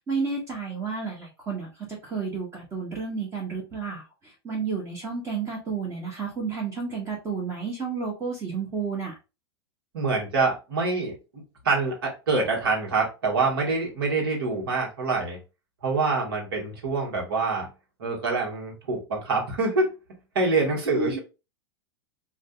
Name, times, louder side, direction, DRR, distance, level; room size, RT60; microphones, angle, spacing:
voice 1, 0.1-9.1 20.9-21.2, right 5 dB, 20° right, -2 dB, 1.1 m, -31 dB
voice 2, 9.9-11.2 11.6-15.4 15.8-17.7 18.0-19.9 20.3-21.2, right 3 dB, 60° right, 0 dB, 1.5 m, -25 dB
5.0 x 2.4 x 2.2 m, 0.28 s
figure-of-eight pair, 95°, 14 cm